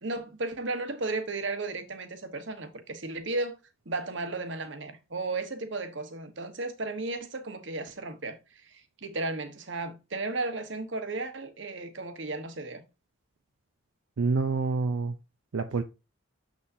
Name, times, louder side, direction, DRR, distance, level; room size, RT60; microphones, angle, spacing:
voice 1, 0.0-3.6 3.8-12.8, right 3 dB, 60° right, 1.2 m, -34 dB
voice 2, 14.2-15.1 15.5-15.8, right 4 dB, 85° right, 0.6 m, -27 dB
7.4 x 6.2 x 2.7 m
head